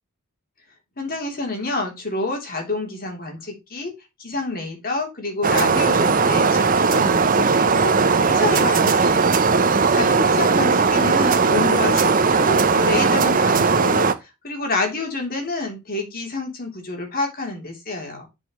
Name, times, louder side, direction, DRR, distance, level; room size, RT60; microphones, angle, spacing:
voice 1, 1.0-3.9 4.2-18.2, left 2 dB, 40° left, 3 dB, 3.3 m, -28 dB
sound 1, 5.4-14.1, right 4 dB, 40° right, 0.8 m, -18 dB
10.0 x 5.5 x 3.1 m, 0.24 s
head